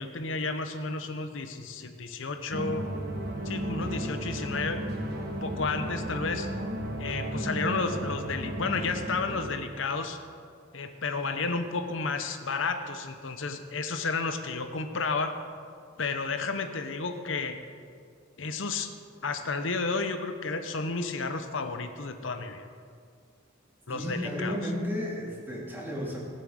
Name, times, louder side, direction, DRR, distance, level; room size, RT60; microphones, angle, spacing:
voice 1, 0.0-2.8 3.4-4.8 5.4-6.5 7.0-10.2 10.7-15.4 16.0-17.6 18.4-18.9 19.2-22.7 23.9-24.6, left 4 dB, 75° left, 7 dB, 0.9 m, -32 dB
sound 1, 2.5-9.5, right 1 dB, 50° right, 1.5 m, -34 dB
voice 2, 23.9-26.2, equal, 10° right, -3 dB, 2.6 m, -33 dB
17.5 x 7.6 x 6.3 m, 2.1 s
head